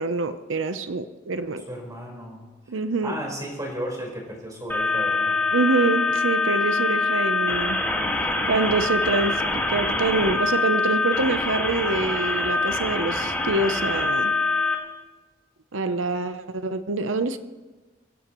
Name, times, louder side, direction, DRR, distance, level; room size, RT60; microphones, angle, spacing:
voice 1, 0.0-1.7 2.7-3.1 5.5-7.8 8.2-14.3 15.7-17.4, right 3 dB, 80° right, 10 dB, 0.7 m, -26 dB
voice 2, 1.7-2.4 3.0-5.4 7.7-8.5, equal, 20° right, -2 dB, 4.5 m, -35 dB
sound 1, 4.7-14.7, left 3 dB, 10° left, 1.8 m, -24 dB
24.0 x 16.0 x 3.1 m, 1.2 s
head